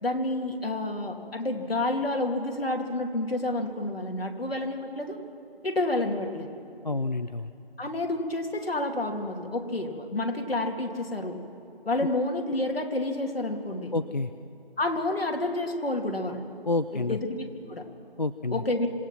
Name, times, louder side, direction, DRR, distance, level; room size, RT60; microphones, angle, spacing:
voice 1, 0.0-5.2 5.6-6.5 7.8-11.4 11.9-13.9 14.8-16.4 16.9-17.8 18.5-18.9, left 2 dB, 70° left, 2 dB, 2.6 m, -29 dB
voice 2, 6.8-7.5 13.9-14.3 16.7-17.2 18.2-18.6, left 3 dB, 50° left, 11 dB, 0.4 m, -28 dB
26.0 x 17.5 x 6.0 m, 2.7 s
figure-of-eight pair, 175°, 30 cm